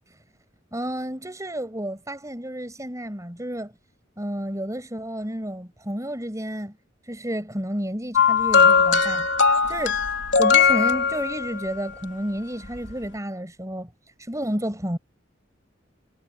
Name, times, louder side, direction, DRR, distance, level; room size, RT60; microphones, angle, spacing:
voice 1, 0.7-3.7 4.2-6.8 7.1-10.0 10.4-13.9 14.2-15.0, equal, 15° right, 8.0 m, -31 dB
sound 1, 8.1-11.7 12.8-12.9, left 5 dB, 70° left, 3.1 m, -19 dB
head